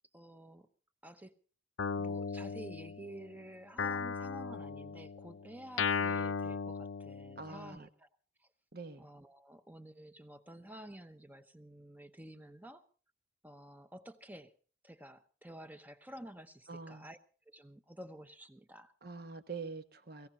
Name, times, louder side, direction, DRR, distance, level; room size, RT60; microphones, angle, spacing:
voice 1, 0.1-0.7 1.0-1.4 2.0-8.1 9.0-12.8 13.4-14.5 14.8-17.2 17.5-18.9, right 1 dB, 10° right, 10 dB, 0.8 m, -51 dB
Guitar, 1.8-3.3 3.8-7.7, left 5 dB, 90° left, 0.7 m, -37 dB
voice 2, 7.4-7.9 8.7-9.1 16.7-17.1 19.0-20.3, right 4 dB, 50° right, 9 dB, 1.2 m, -45 dB
17.5 x 17.0 x 4.3 m, 0.41 s
head